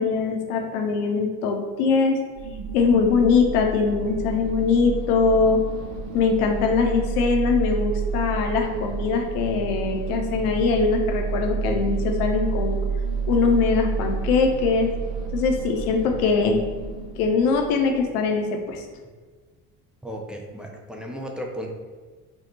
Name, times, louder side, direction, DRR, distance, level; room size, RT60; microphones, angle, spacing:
voice 1, 0.0-2.2 2.7-5.6 6.1-12.8 13.3-14.9 15.3-16.6 17.2-18.8, left 5 dB, 70° left, 3 dB, 0.8 m, -22 dB
sound 1, 2.4-18.3, right 5 dB, 55° right, 0.6 m, -30 dB
voice 2, 20.0-21.7, equal, ahead, 0 dB, 0.4 m, -35 dB
3.5 x 2.3 x 4.1 m, 1.5 s
figure-of-eight pair, 55°, 48 cm